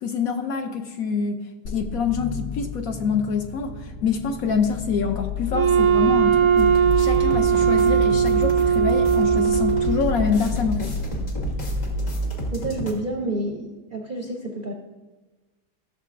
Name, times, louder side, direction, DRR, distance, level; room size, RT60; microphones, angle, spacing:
voice 1, 0.0-1.4 1.7-10.9, left 5 dB, 65° left, 6 dB, 1.0 m, -26 dB
sound 1, 1.6-11.9, left 7 dB, 85° left, 1.5 m, -33 dB
Wind instrument woodwind instrument, 5.5-10.2, right 8 dB, 70° right, 0.9 m, -19 dB
sound 2, 6.6-12.9, right 1 dB, 50° left, 1.8 m, -29 dB
voice 2, 12.5-14.7, right 2 dB, 50° right, 2 dB, 0.6 m, -29 dB
15.5 x 6.6 x 2.5 m, 1.2 s
omnidirectional pair, 1.8 m